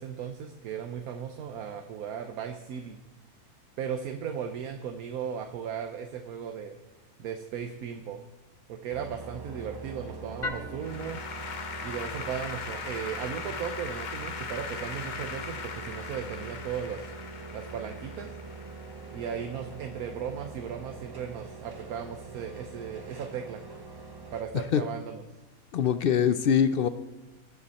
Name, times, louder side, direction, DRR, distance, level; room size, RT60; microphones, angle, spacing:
voice 1, 0.0-3.0 3.8-6.8 7.2-8.2 8.7-11.3 11.8-17.1 17.5-18.3 19.1-23.6 24.3-25.2, right 8 dB, 75° right, 5 dB, 1.2 m, -36 dB
sound 1, 8.9-24.4, right 3 dB, 20° right, 0.7 m, -43 dB
Applause / Keyboard (musical), 10.4-19.8, left 5 dB, 40° left, 0.7 m, -39 dB
voice 2, 25.7-26.9, left 8 dB, 80° left, 12 dB, 0.5 m, -23 dB
19.5 x 7.4 x 4.2 m, 1.1 s
omnidirectional pair, 1.6 m